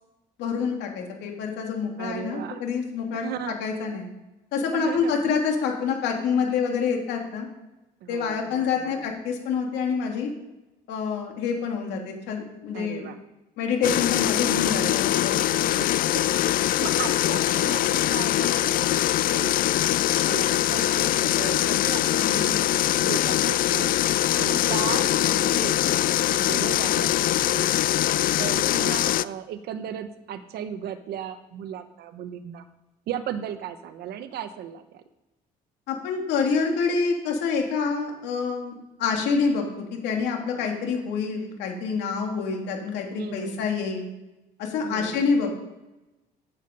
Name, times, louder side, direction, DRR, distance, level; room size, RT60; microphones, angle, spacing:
voice 1, 0.4-4.1 4.5-7.5 8.1-10.3 10.9-13.0 13.6-15.4 35.9-38.7 39.0-39.6 40.0-44.1 44.6-45.6, left 5 dB, 85° left, 2 dB, 2.9 m, -27 dB
voice 2, 2.0-2.6 3.2-3.5 4.7-5.3 8.0-9.0 12.7-13.2 15.7-15.9 16.1-16.3 16.8-19.6 20.2-22.6 23.0-23.9 24.3-27.6 28.4-32.6 33.1-35.0 43.2-43.6 44.8-45.2, right 9 dB, 75° right, 9 dB, 1.0 m, -36 dB
sound 1, 13.8-29.2, left 13 dB, 55° left, 0.4 m, -23 dB
13.5 x 8.7 x 5.4 m, 1.0 s
cardioid pair, 110°, 17 cm